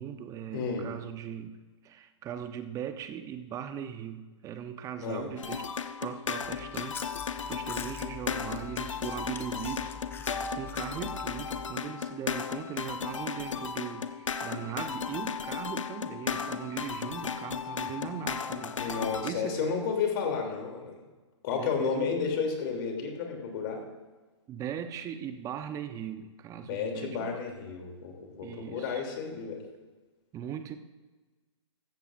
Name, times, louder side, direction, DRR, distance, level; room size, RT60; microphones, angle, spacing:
voice 1, 0.0-1.6 1.8-5.7 6.0-7.2 7.5-19.6 21.5-22.2 24.5-27.4 28.4-29.0 30.3-30.8, right 9 dB, 20° right, 9 dB, 0.7 m, -39 dB
voice 2, 0.5-0.9 5.0-5.3 18.8-21.0 21.4-23.8 26.7-29.6, left 5 dB, 50° left, 2 dB, 3.0 m, -32 dB
sound 1, 5.4-19.3, left 6 dB, 85° left, 0.8 m, -35 dB
Chewing mastication, 6.4-11.8, left 4 dB, 15° left, 0.7 m, -45 dB
15.0 x 14.5 x 2.6 m, 1.3 s
hypercardioid pair, 130°, 16 cm